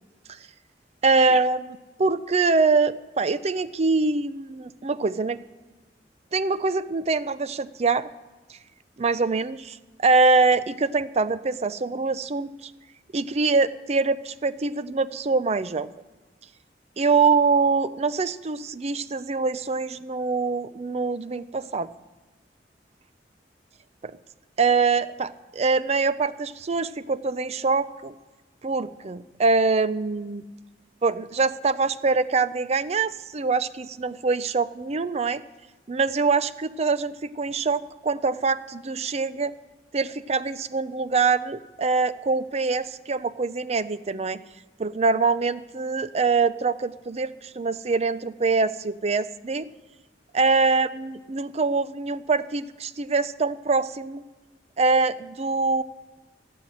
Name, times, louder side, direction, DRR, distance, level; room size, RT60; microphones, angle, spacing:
voice 1, 1.0-5.4 6.3-8.1 9.0-12.7 13.1-15.9 17.0-21.9 24.0-24.1 24.6-28.1 28.6-30.4 31.0-35.4 35.9-39.5 39.9-44.4 44.8-49.7 50.3-54.2 54.8-55.8, right 4 dB, 35° right, 15 dB, 0.5 m, -24 dB
16.5 x 7.5 x 7.7 m, 1.2 s
head